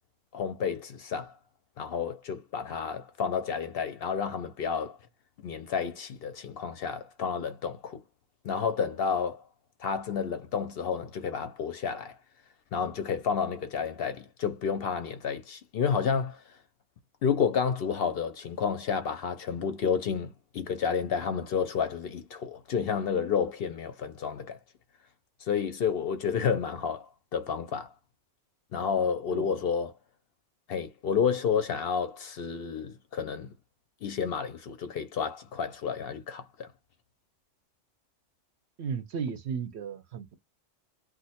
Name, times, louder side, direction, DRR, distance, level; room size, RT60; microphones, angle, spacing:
voice 1, 0.3-1.4 1.8-5.0 5.4-8.0 8.4-9.4 9.8-12.2 12.7-16.6 17.2-24.6 25.4-27.9 28.7-29.9 30.7-33.5 34.0-36.7, left 6 dB, 60° left, 0.7 m, -30 dB
voice 2, 38.8-40.4, right 6 dB, 65° right, 0.8 m, -35 dB
2.5 x 2.2 x 4.0 m
omnidirectional pair, 1.3 m